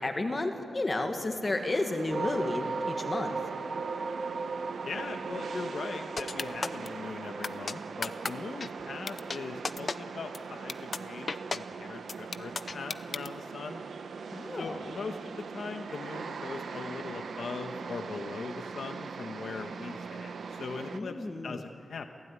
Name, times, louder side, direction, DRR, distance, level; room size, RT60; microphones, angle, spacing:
voice 1, 0.0-3.4 14.3-14.8 20.9-21.6, left 2 dB, 25° left, 5 dB, 1.7 m, -32 dB
sound 1, 1.4-21.0, right 5 dB, 75° right, 1.1 m, -41 dB
sound 2, 2.1-9.5, right 4 dB, 45° right, 1.0 m, -38 dB
voice 2, 4.8-13.8 14.5-22.2, left 4 dB, 70° left, 5 dB, 1.3 m, -40 dB
sound 3, 6.2-6.9 7.4-7.7 8.0-8.3 8.6-8.7 9.1-9.4 9.6-10.0 10.3-10.4 10.7-11.0 11.3-11.6 12.1-13.3, left 4 dB, 45° left, 0.7 m, -32 dB
28.0 x 16.0 x 9.8 m, 2.5 s
wide cardioid pair, 140°, 0 cm